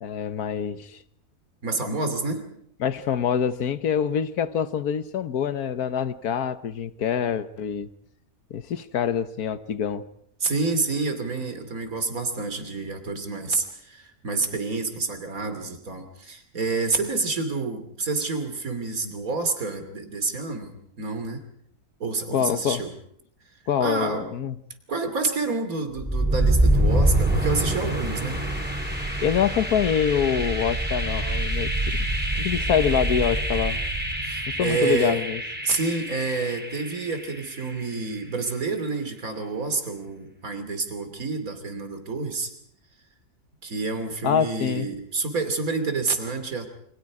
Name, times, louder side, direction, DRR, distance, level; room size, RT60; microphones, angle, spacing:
voice 1, 0.0-1.0 2.8-7.9 8.5-10.0 22.3-22.8 23.7-24.6 29.2-32.0 32.3-33.8 34.5-35.4 44.2-44.9, left 8 dB, 85° left, 12 dB, 1.6 m, -25 dB
voice 2, 1.6-2.5 10.4-21.4 22.0-22.9 23.8-24.3 24.9-28.4 34.2-35.2 35.6-42.5 43.6-46.7, right 3 dB, 70° right, 8 dB, 3.3 m, -28 dB
sound 1, 26.0-37.8, right 1 dB, 5° right, 3.6 m, -26 dB
28.5 x 25.0 x 4.9 m, 0.68 s
omnidirectional pair, 1.6 m